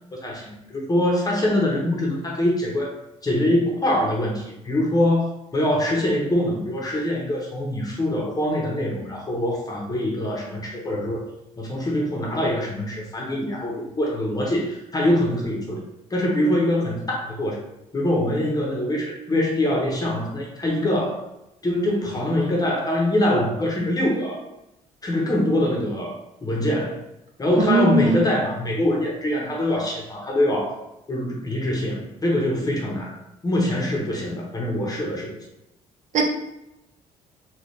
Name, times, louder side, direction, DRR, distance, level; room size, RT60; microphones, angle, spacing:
voice 1, 0.1-2.9 3.2-11.2 11.6-15.8 16.1-17.6 17.9-21.2 21.6-24.4 25.0-26.2 26.4-27.0 27.4-30.7 31.1-33.1 33.4-35.4, left 1 dB, 25° left, -2 dB, 0.9 m, -23 dB
voice 2, 27.6-28.2 36.1-36.2, right 2 dB, 55° right, 0 dB, 0.9 m, -19 dB
3.9 x 2.3 x 3.2 m, 0.89 s
cardioid pair, 80°, 15 cm